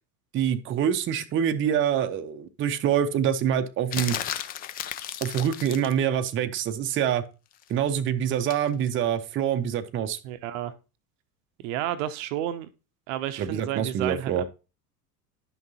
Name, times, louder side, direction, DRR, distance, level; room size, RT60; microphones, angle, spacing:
voice 1, 0.3-4.2 5.2-7.2 7.7-10.2 13.4-14.4, right 9 dB, 25° right, 0.6 m, -25 dB
sound 1, 3.9-6.0 8.5-8.7, left 10 dB, 20° left, 0.3 m, -33 dB
voice 2, 10.2-10.7 11.6-12.7 13.1-14.4, right 12 dB, 55° right, 0.7 m, -31 dB
10.5 x 5.9 x 2.8 m
figure-of-eight pair, 75°, 48 cm